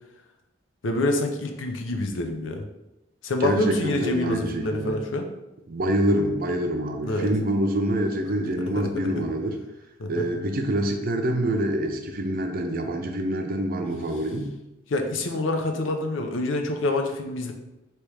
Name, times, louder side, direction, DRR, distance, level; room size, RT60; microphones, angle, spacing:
voice 1, 0.8-2.7 3.2-5.3 7.0-7.3 8.7-9.2 10.0-10.3 14.9-17.5, left 2 dB, 75° left, 4 dB, 0.6 m, -27 dB
voice 2, 3.4-5.0 5.7-9.6 10.1-14.5, right 1 dB, 50° right, 4 dB, 0.5 m, -26 dB
3.3 x 3.0 x 4.7 m, 0.96 s
head